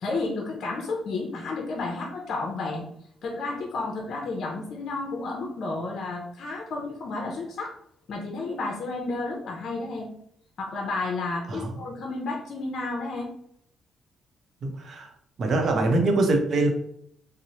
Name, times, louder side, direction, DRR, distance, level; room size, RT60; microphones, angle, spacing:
voice 1, 0.0-2.9 3.2-7.7 8.1-10.1 10.6-13.3, left 3 dB, 65° left, 0 dB, 0.5 m, -31 dB
voice 2, 14.6-15.1 15.4-16.7, right 2 dB, 55° right, 3 dB, 0.6 m, -23 dB
2.8 x 2.0 x 2.8 m, 0.69 s
cardioid pair, 90°, 0 cm